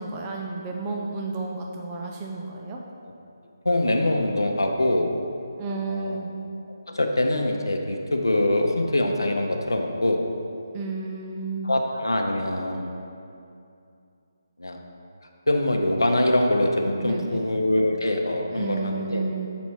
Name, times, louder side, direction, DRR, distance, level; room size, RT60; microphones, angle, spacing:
voice 1, 0.0-2.8 5.6-6.3 10.7-11.7 17.0-17.5 18.5-19.5, right 3 dB, 20° right, -1 dB, 0.6 m, -31 dB
voice 2, 3.6-5.1 5.9-6.2 6.9-10.2 11.6-12.9 14.6-14.8 15.5-19.2, left 1 dB, 90° left, 2 dB, 0.7 m, -23 dB
7.0 x 4.2 x 4.6 m, 2.5 s
figure-of-eight pair, 155°, 2 cm